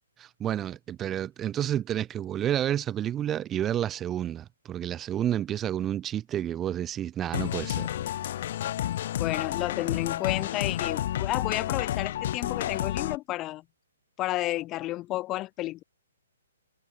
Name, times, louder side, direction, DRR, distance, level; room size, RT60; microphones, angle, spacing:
voice 1, 0.2-7.9, right 11 dB, 20° right, 3.1 m, -30 dB
sound 1, 7.3-13.2, left 12 dB, 50° left, 4.3 m, -30 dB
voice 2, 9.2-13.6 14.2-15.8, left 17 dB, 25° left, 4.7 m, -31 dB
hypercardioid pair, 135°, 0 cm